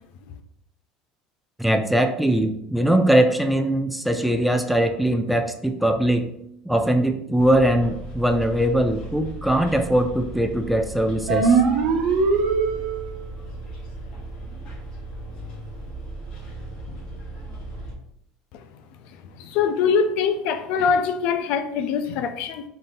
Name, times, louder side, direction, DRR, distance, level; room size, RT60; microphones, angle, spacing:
voice 1, 1.6-6.3 6.7-11.6, right 1 dB, ahead, 0.3 m, -21 dB
Bus, 7.4-17.9, right 2 dB, 45° left, 1.3 m, -37 dB
sound 1, 11.3-13.2, right 5 dB, 60° right, 0.9 m, -20 dB
voice 2, 19.1-22.6, left 6 dB, 65° left, 0.4 m, -23 dB
3.9 x 2.7 x 3.8 m
cardioid pair, 130°, 2 cm